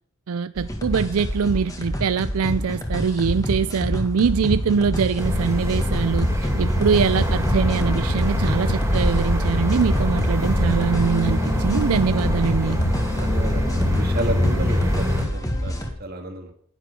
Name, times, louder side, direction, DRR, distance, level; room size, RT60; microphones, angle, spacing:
voice 1, 0.3-12.8, right 6 dB, 85° right, 14 dB, 0.4 m, -23 dB
sound 1, 0.6-15.9, equal, 15° left, 1.8 m, -28 dB
sound 2, 3.3-15.9, equal, 85° left, 2.0 m, -29 dB
sound 3, 5.2-15.3, left 1 dB, 15° right, 2.7 m, -24 dB
voice 2, 13.1-16.5, right 1 dB, 45° right, 5 dB, 2.0 m, -32 dB
10.5 x 9.2 x 5.2 m, 0.65 s
head